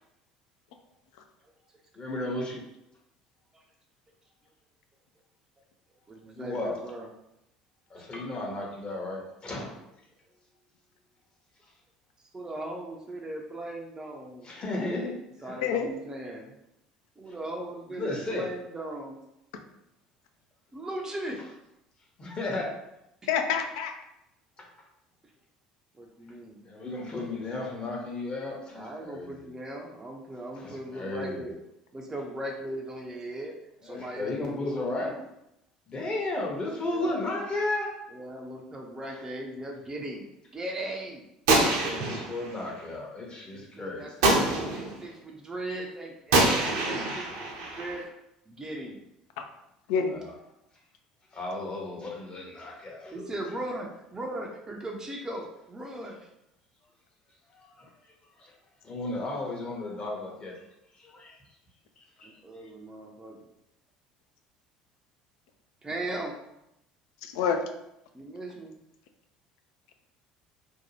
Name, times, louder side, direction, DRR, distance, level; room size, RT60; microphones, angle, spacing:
voice 1, 1.9-2.6 6.3-6.8 7.9-9.8 14.4-15.6 17.9-18.5 22.2-22.7 24.6-24.7 26.6-29.4 30.5-31.5 33.8-35.1 35.9-37.9 39.1-39.2 41.9-44.1 50.1-50.2 51.3-53.4 57.5-57.9 58.4-58.5 58.8-60.6 60.9-61.4 62.2-62.4, left 2 dB, 30° left, -1 dB, 0.9 m, -34 dB
voice 2, 6.1-7.1 12.3-14.5 15.4-16.5 17.2-19.2 20.7-21.4 26.0-26.6 28.7-31.6 31.9-33.5 33.8-35.2 36.9-37.2 38.1-40.3 40.5-41.3 43.5-47.3 47.6-48.0 48.5-49.0 53.1-56.2 62.2-63.4 65.8-66.4 68.1-68.7, right 1 dB, 15° right, 0 dB, 0.4 m, -38 dB
voice 3, 23.3-24.0 49.4-49.5 49.9-50.2 67.2-67.6, left 6 dB, 65° left, 5 dB, 0.3 m, -27 dB
Gunshot gunfire, 41.5-42.6 44.2-45.0 46.3-48.0, right 2 dB, 65° right, 0.6 m, -25 dB
2.6 x 2.2 x 2.8 m, 0.84 s
figure-of-eight pair, 60°, 3 cm